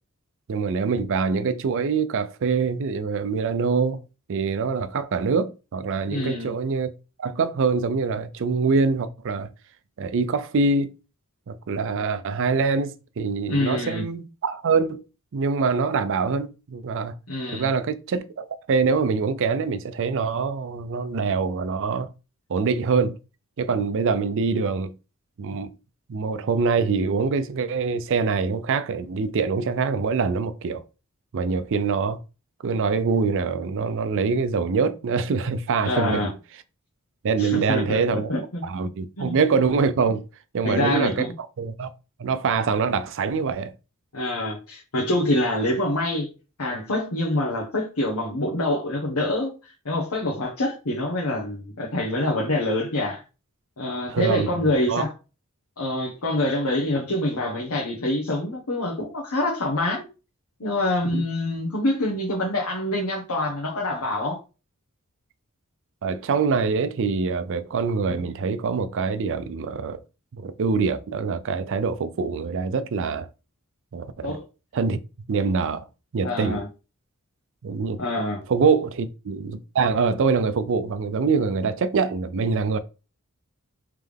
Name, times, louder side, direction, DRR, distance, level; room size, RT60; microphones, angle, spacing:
voice 1, 0.5-4.0 4.3-6.9 7.2-9.5 10.0-11.0 11.5-15.0 15.3-17.1 17.5-22.1 22.5-23.2 23.6-24.9 25.4-25.7 26.1-30.8 31.3-32.2 32.6-36.3 37.2-38.3 38.6-40.2 40.5-41.3 41.6-41.9 42.2-43.7 54.1-54.5 54.9-55.0 61.1-61.2 66.0-70.0 70.3-73.3 73.9-74.4 74.7-75.0 75.3-75.9 76.1-76.6 77.6-78.0 78.5-82.8, right 5 dB, 60° right, 0.4 m, -24 dB
voice 2, 6.1-6.5 13.5-14.0 17.3-17.7 35.8-36.3 37.4-38.6 39.2-39.4 40.6-41.3 44.1-46.3 46.6-53.2 53.8-55.1 55.8-60.0 60.6-64.4 74.2-74.4 76.2-76.7 78.0-78.4, left 1 dB, 80° left, 1.1 m, -26 dB
3.5 x 3.3 x 3.5 m
head